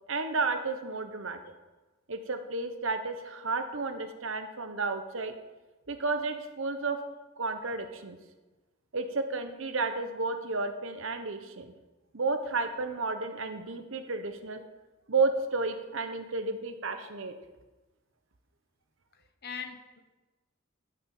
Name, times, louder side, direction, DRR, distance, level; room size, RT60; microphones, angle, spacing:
voice 1, 0.1-1.4 2.1-5.3 5.9-7.0 7.4-8.2 8.9-11.7 12.1-14.6 15.1-17.3, right 3 dB, 65° right, 7 dB, 1.1 m, -32 dB
voice 2, 19.1-20.0, left 6 dB, 50° left, 7 dB, 1.1 m, -41 dB
11.5 x 6.2 x 7.3 m, 1.2 s
head